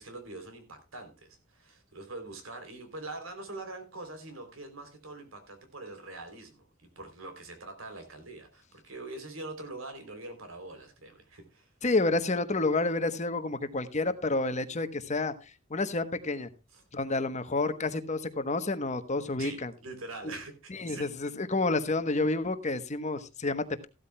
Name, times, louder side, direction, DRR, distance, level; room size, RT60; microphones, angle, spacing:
voice 1, 0.0-11.7 16.7-16.8 19.4-21.1, right 2 dB, 85° right, 3.3 m, -44 dB
voice 2, 11.8-15.3 15.7-16.5 16.9-19.7 20.2-20.3 20.7-23.9, left 2 dB, 35° left, 1.0 m, -29 dB
15.0 x 12.5 x 2.2 m
head